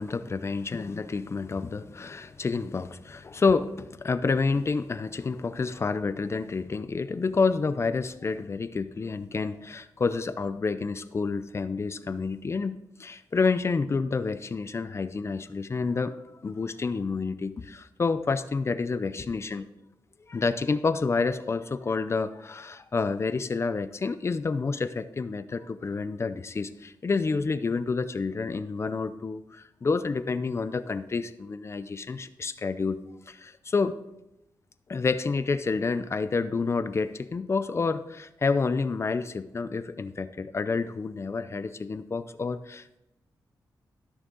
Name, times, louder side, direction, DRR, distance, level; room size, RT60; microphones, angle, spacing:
voice 1, 0.0-19.6 20.3-33.0 33.3-34.0 34.9-43.0, left 4 dB, 35° left, 12 dB, 0.5 m, -29 dB
13.5 x 6.4 x 3.8 m, 0.90 s
wide cardioid pair, 115°, 8 cm